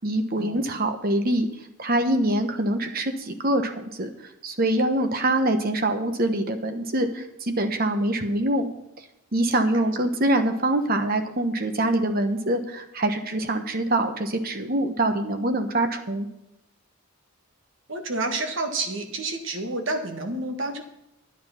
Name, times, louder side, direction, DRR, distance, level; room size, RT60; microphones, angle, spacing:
voice 1, 0.0-1.5 1.8-4.1 4.4-8.7 9.3-16.3, right 1 dB, 45° right, 7 dB, 1.1 m, -24 dB
voice 2, 17.9-20.8, right 2 dB, 60° right, 5 dB, 1.6 m, -29 dB
10.5 x 9.4 x 5.8 m, 0.85 s
head